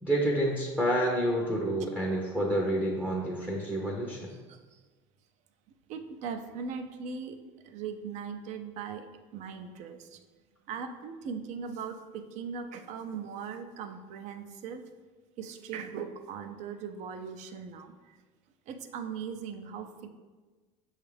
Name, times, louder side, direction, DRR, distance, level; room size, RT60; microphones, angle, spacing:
voice 1, 0.0-4.3, right 1 dB, 10° right, -3 dB, 0.6 m, -28 dB
voice 2, 4.5-4.8 5.9-7.4 7.6-10.2 10.7-14.9 15.4-18.2 18.7-20.1, right 6 dB, 55° right, 7 dB, 0.5 m, -39 dB
6.1 x 2.4 x 3.3 m, 1.3 s
supercardioid pair, 115°, 14 cm